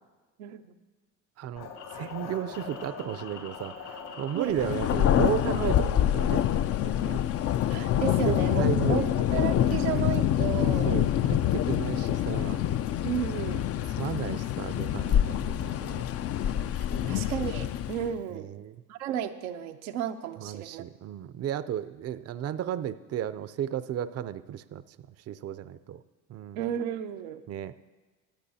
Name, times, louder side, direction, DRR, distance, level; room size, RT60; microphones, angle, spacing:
voice 1, 0.4-0.7 4.3-4.6 7.7-9.0 9.3-11.0 13.0-13.7 17.0-18.5 18.9-20.8 26.6-27.4, right 10 dB, 85° right, 6 dB, 0.7 m, -33 dB
voice 2, 1.4-6.5 6.8-7.2 8.2-9.1 10.9-12.6 14.0-16.0 16.9-17.3 18.3-18.8 20.4-24.8 25.3-26.0 26.3-26.7 27.5-27.7, right 10 dB, 35° right, 14 dB, 0.5 m, -34 dB
sound 1, 1.6-7.5, left 5 dB, 70° left, 2.8 m, -44 dB
Thunder, 4.5-18.2, left 11 dB, 35° left, 0.4 m, -26 dB
24.0 x 8.4 x 2.8 m, 1.3 s
hypercardioid pair, 70°, 42 cm